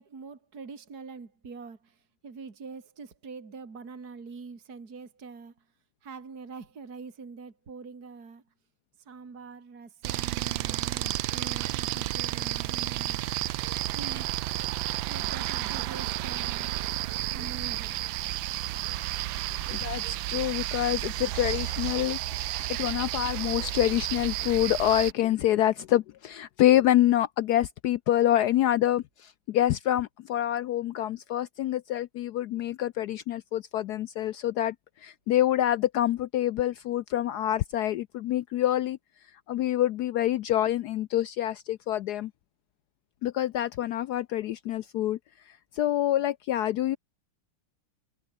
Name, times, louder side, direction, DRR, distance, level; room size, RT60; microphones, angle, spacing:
voice 1, 0.0-5.7 6.0-8.4 9.0-13.2 13.8-14.3 15.1-16.8 17.3-18.0, right 5 dB, 45° right, 3.3 m, -44 dB
sound 1, 10.0-25.1, right 15 dB, 75° right, 1.3 m, -32 dB
voice 2, 19.7-34.7 35.0-39.0 39.5-42.3 43.2-45.2 45.7-47.0, left 12 dB, 90° left, 0.8 m, -26 dB
omnidirectional pair, 2.4 m